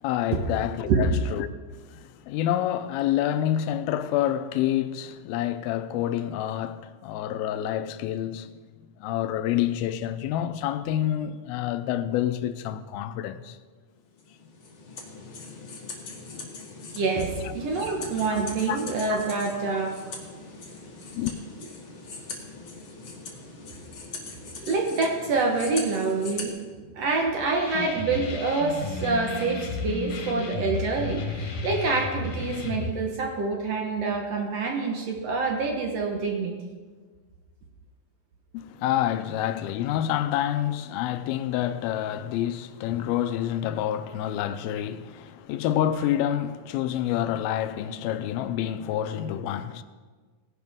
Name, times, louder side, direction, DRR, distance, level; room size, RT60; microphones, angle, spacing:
voice 1, 0.0-1.5 1.8-8.6 9.0-13.6 16.3-16.5 18.3-18.4 18.7-18.9 21.1-21.3 38.5-49.8, left 11 dB, 80° left, 2.4 m, -28 dB
sound 1, 14.2-26.5, left 3 dB, 45° left, 1.9 m, -41 dB
voice 2, 16.9-20.0 24.4-26.6 26.9-36.5, right 3 dB, 65° right, 1.7 m, -26 dB
sound 2, 27.7-32.9, left 3 dB, 60° left, 2.7 m, -33 dB
18.5 x 11.0 x 3.6 m
omnidirectional pair, 4.4 m